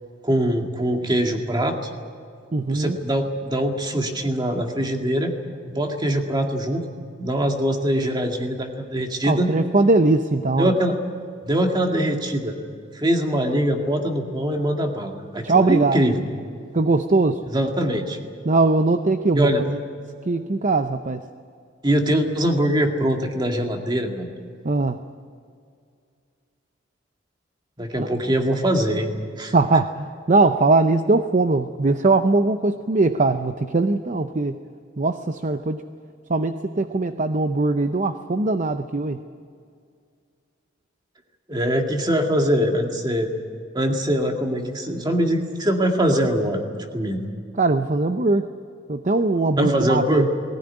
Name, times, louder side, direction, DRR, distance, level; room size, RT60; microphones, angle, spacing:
voice 1, 0.2-1.9 2.7-5.3 5.7-6.8 7.2-9.5 10.6-11.0 11.5-12.5 12.9-16.3 17.5-18.2 19.3-19.6 21.8-24.3 27.8-29.1 29.4-29.5 41.5-43.3 43.7-46.7 46.9-47.3 49.6-50.3, equal, 20° right, 3 dB, 2.1 m, -22 dB
voice 2, 2.5-3.0 9.3-10.7 15.4-16.0 16.7-17.4 18.5-19.8 20.3-21.2 24.6-25.0 28.0-28.1 29.5-34.6 35.0-35.8 36.3-39.2 47.6-48.5 48.9-50.3, right 3 dB, 40° right, 9 dB, 0.6 m, -20 dB
19.5 x 17.5 x 10.0 m, 2.3 s
head